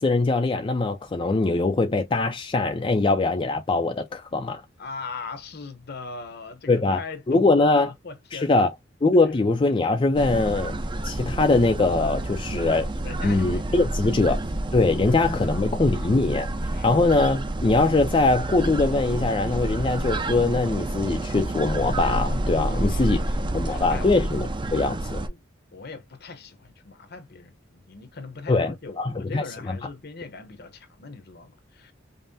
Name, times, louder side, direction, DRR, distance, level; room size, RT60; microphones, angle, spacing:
voice 1, 0.0-4.6 6.7-7.0 7.3-7.9 8.3-8.7 9.0-10.7 11.0-12.9 13.2-14.4 14.7-16.5 16.8-23.2 23.5-25.3 28.5-29.8, left 3 dB, 25° left, 0.4 m, -22 dB
voice 2, 4.8-8.6 13.0-14.4 15.1-16.0 16.7-17.0 22.6-24.1 24.4-24.5 25.2-25.4 25.7-31.9, left 4 dB, 55° left, 0.8 m, -40 dB
sound 1, 10.1-25.3, right 1 dB, 25° right, 0.5 m, -29 dB
5.3 x 2.0 x 2.7 m
head